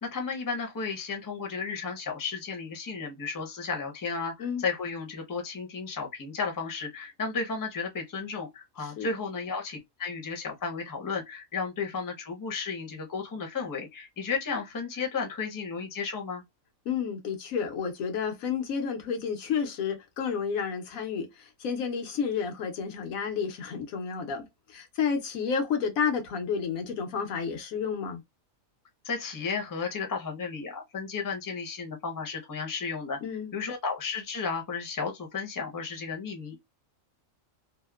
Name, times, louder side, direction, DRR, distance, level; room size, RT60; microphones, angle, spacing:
voice 1, 0.0-16.4 29.0-33.2 33.5-36.6, left 5 dB, 20° left, 0.5 m, -33 dB
voice 2, 16.9-28.2 33.2-33.5, left 6 dB, 85° left, 1.2 m, -31 dB
2.9 x 2.1 x 2.2 m
omnidirectional pair, 1.4 m